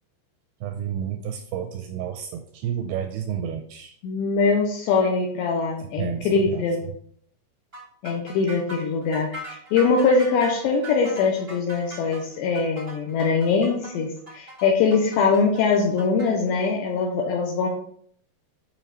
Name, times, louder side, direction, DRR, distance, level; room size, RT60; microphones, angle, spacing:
voice 1, 0.6-4.0 6.0-6.6, right 9 dB, 85° right, 6 dB, 2.4 m, -31 dB
voice 2, 4.0-6.8 8.0-17.7, left 4 dB, 80° left, 0 dB, 3.1 m, -22 dB
sound 1, 7.7-16.3, right 1 dB, 60° right, 0.6 m, -40 dB
8.8 x 5.6 x 4.2 m, 0.63 s
omnidirectional pair, 5.2 m